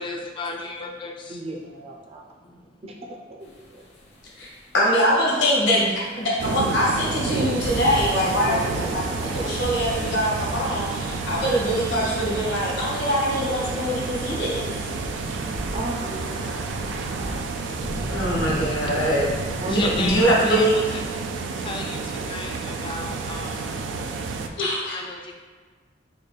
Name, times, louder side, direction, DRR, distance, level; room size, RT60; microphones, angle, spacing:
voice 1, 0.0-1.4 2.6-2.7 19.7-21.0 21.6-23.9 24.9-25.3, left 3 dB, 30° left, 2 dB, 0.4 m, -33 dB
voice 2, 1.3-2.3 2.8-2.9 3.3-3.9 8.4-9.6 15.7-16.7 19.6-20.2, right 1 dB, 35° right, 0 dB, 0.5 m, -36 dB
sound 1, 3.4-20.2, equal, 65° left, 0.8 m, -41 dB
voice 3, 4.7-14.8 18.1-19.3 19.6-21.0 24.6-25.0, equal, 80° left, -5 dB, 1.1 m, -23 dB
sound 2, 6.4-24.5, right 4 dB, 90° right, 0.3 m, -30 dB
sound 3, 7.6-17.4, equal, 60° right, 0.9 m, -37 dB
4.0 x 2.3 x 3.3 m, 1.5 s
head